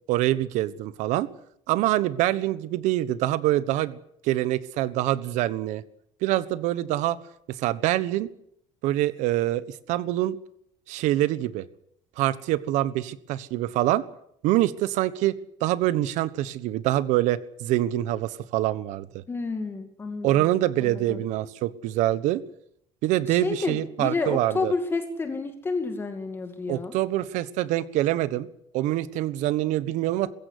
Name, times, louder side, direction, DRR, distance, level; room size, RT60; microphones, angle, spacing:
voice 1, 0.1-1.3 1.7-4.0 4.2-5.8 6.2-7.2 7.5-8.3 8.8-10.4 10.9-11.7 12.2-14.0 14.4-19.2 20.2-22.4 23.0-24.7 26.7-28.5 28.7-30.3, right 14 dB, 70° right, 16 dB, 1.3 m, -25 dB
voice 2, 19.3-20.5 20.8-21.2 23.3-26.9, left 3 dB, 20° left, 6 dB, 2.3 m, -30 dB
21.5 x 16.0 x 9.8 m, 0.71 s
cardioid pair, 170°, 13 cm